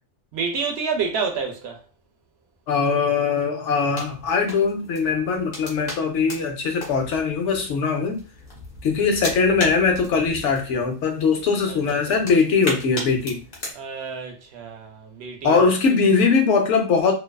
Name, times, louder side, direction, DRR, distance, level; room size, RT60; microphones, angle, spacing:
voice 1, 0.3-1.8 11.7-12.2 13.7-15.7, right 5 dB, 70° right, 0.8 m, -29 dB
voice 2, 2.7-8.2 8.8-13.4 15.4-17.1, left 5 dB, 90° left, 1.0 m, -21 dB
sound 1, 4.0-13.7, left 1 dB, 55° left, 1.0 m, -37 dB
2.6 x 2.3 x 2.2 m
omnidirectional pair, 1.2 m